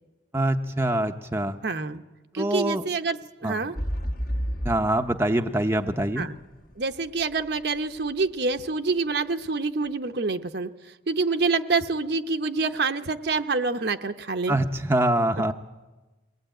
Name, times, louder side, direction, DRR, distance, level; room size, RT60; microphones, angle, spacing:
voice 1, 0.3-1.6 2.4-2.8 3.4-3.6 4.6-6.3 14.5-15.5, right 1 dB, 10° right, 4 dB, 0.7 m, -24 dB
voice 2, 1.6-2.0 2.3-3.8 6.2-6.3 6.8-10.7 11.1-14.6, right 4 dB, 55° right, 7 dB, 0.8 m, -27 dB
sound 1, 3.8-7.6 8.2-8.3, equal, 45° left, 1.5 m, -31 dB
22.5 x 18.5 x 9.0 m, 1.2 s
head